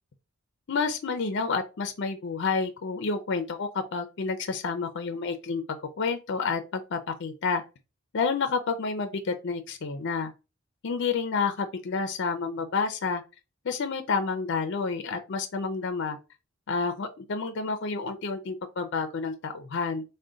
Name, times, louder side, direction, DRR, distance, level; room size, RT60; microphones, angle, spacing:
voice 1, 0.7-7.6 8.1-10.3 10.8-13.2 13.6-16.2 16.7-20.0, left 4 dB, 60° left, 0.5 m, -29 dB
3.6 x 2.1 x 3.8 m
head